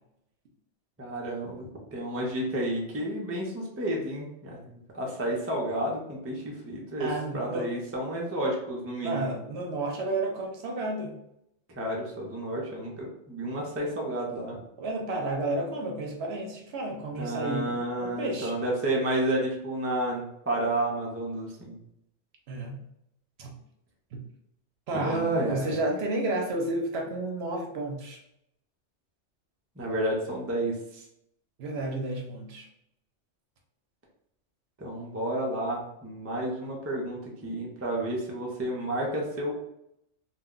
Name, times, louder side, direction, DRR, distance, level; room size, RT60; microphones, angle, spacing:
voice 1, 1.0-7.1 7.3-9.3 11.8-14.6 17.2-21.8 25.0-25.7 29.8-31.0 34.8-39.6, right 1 dB, 20° right, -3 dB, 0.4 m, -31 dB
voice 2, 7.0-7.7 9.0-11.1 14.8-18.6 22.5-22.8 23.4-23.5 24.1-24.2 24.9-28.2 31.6-32.7, right 2 dB, 65° right, 1 dB, 0.8 m, -31 dB
2.4 x 2.2 x 3.7 m, 0.80 s
omnidirectional pair, 1.2 m